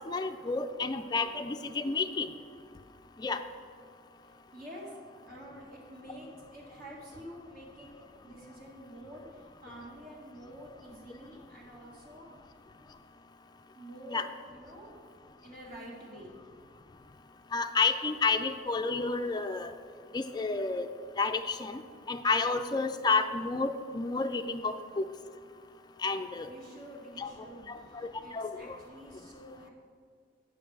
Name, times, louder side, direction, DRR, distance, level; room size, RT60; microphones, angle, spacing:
voice 1, 0.0-2.3 3.2-3.4 14.1-14.3 17.5-19.7 20.1-20.9 21.2-21.8 22.1-25.0 26.0-26.5 27.2-27.3 28.3-28.8, left 4 dB, 20° left, 7 dB, 0.4 m, -30 dB
voice 2, 4.5-4.9 5.3-12.3 13.8-15.1 15.4-16.4 26.5-29.7, equal, 50° right, -3 dB, 1.8 m, -48 dB
9.2 x 5.8 x 4.7 m, 2.2 s
head